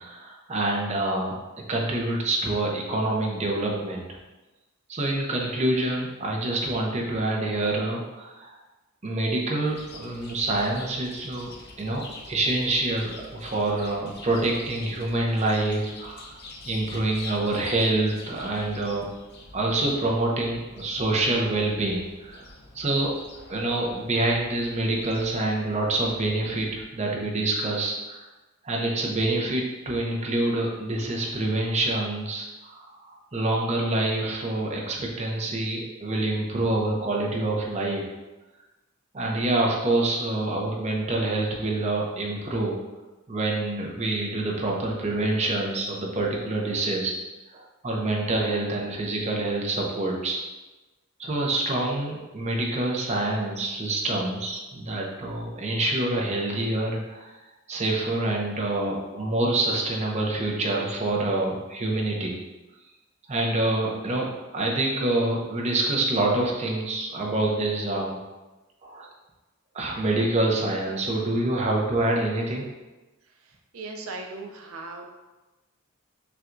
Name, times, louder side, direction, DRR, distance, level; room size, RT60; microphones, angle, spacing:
voice 1, 0.0-1.4 1.7-4.0 4.9-8.6 9.0-11.5 11.8-16.3 16.7-19.1 19.5-22.4 22.7-28.2 28.6-38.0 39.1-42.8 43.3-47.2 47.5-50.4 51.2-57.3 57.7-62.4 63.3-68.2 68.8-69.1 69.7-72.7, right 2 dB, 30° right, -1 dB, 0.6 m, -26 dB
Chirp tweet, 9.7-26.8, left 2 dB, 50° left, 0.6 m, -46 dB
voice 2, 73.7-75.1, right 3 dB, 80° right, 2 dB, 0.5 m, -37 dB
5.7 x 2.3 x 2.5 m, 1.1 s
head